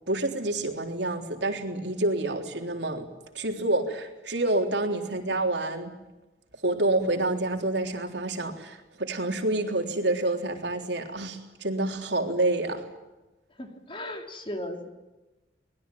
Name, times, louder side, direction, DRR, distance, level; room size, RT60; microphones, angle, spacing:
voice 1, 0.1-3.1 3.3-5.9 6.6-12.9, right 2 dB, 75° right, 4 dB, 3.7 m, -28 dB
voice 2, 13.5-14.9, left 1 dB, 30° left, 4 dB, 3.4 m, -36 dB
24.5 x 20.5 x 9.3 m, 1.1 s
head